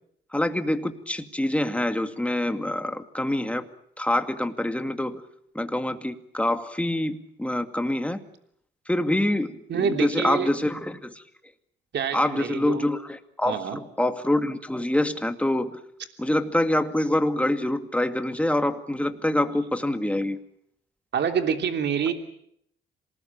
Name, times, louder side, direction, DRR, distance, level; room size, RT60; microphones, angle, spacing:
voice 1, 0.3-3.7 4.0-5.2 5.5-8.2 8.9-11.2 12.1-15.8 16.2-20.4, left 1 dB, 5° left, 7 dB, 2.3 m, -26 dB
voice 2, 9.7-10.5 11.9-12.8 13.5-13.8 21.1-22.1, right 7 dB, 60° right, 6 dB, 3.2 m, -26 dB
27.0 x 19.5 x 8.9 m, 0.72 s
cardioid pair, 90°, 20 cm